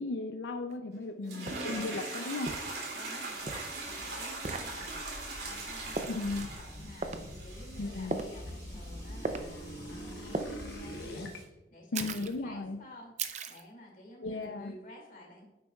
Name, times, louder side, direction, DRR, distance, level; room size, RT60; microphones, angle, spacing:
voice 1, 0.0-2.5 6.1-6.5 7.8-8.2 11.9-12.8 14.2-14.7, left 3 dB, 85° left, 6 dB, 0.5 m, -36 dB
sound 1, 0.7-0.8 1.5-1.8 2.5-2.8 3.5-3.7 4.4-4.7 6.0-6.2 7.0-7.2 8.1-8.4 9.3-9.5 10.3-10.5 12.0-12.4 13.2-13.6, right 3 dB, 40° right, 0.6 m, -36 dB
voice 2, 1.2-1.7 2.9-15.4, left 1 dB, 45° left, -1 dB, 2.5 m, -51 dB
sound 2, 1.2-11.4, right 2 dB, 65° right, 2.7 m, -42 dB
sound 3, 3.3-11.4, equal, 65° left, 1.2 m, -45 dB
9.6 x 7.5 x 2.4 m, 1.1 s
head